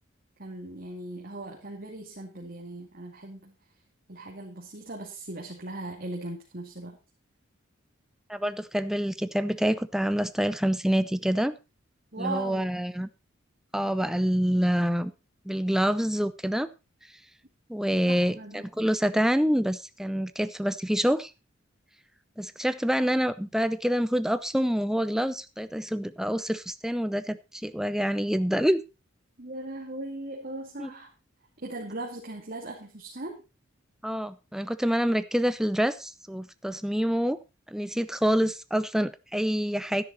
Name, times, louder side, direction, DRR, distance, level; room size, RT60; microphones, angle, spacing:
voice 1, 0.4-3.5 4.1-7.0 12.1-12.6 18.0-18.7 29.4-31.1 31.6-33.4, right 2 dB, 45° right, -1 dB, 2.5 m, -38 dB
voice 2, 8.3-11.5 12.2-13.1 13.7-15.1 15.4-16.7 17.7-21.3 22.4-28.8 30.8-30.9 34.0-37.4 37.7-40.0, equal, ahead, 12 dB, 0.6 m, -26 dB
13.0 x 10.5 x 4.1 m, 0.27 s
head